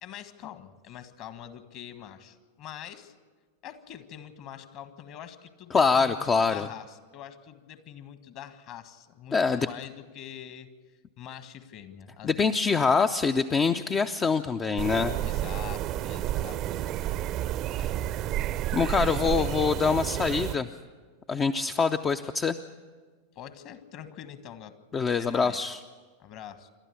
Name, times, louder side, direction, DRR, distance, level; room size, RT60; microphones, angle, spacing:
voice 1, 0.0-3.1 3.6-10.7 11.2-12.5 15.2-16.6 17.8-18.0 18.9-19.5 23.3-24.8 25.2-25.7 26.2-26.7, left 10 dB, 40° left, 10 dB, 1.6 m, -44 dB
voice 2, 5.7-6.7 9.3-9.7 12.2-15.2 18.7-20.7 21.3-22.6 24.9-25.8, left 5 dB, 20° left, 9 dB, 0.6 m, -24 dB
sound 1, 14.8-20.5, right 13 dB, 35° right, 0.7 m, -30 dB
28.0 x 12.5 x 8.4 m, 1.5 s
figure-of-eight pair, 90°, 0 cm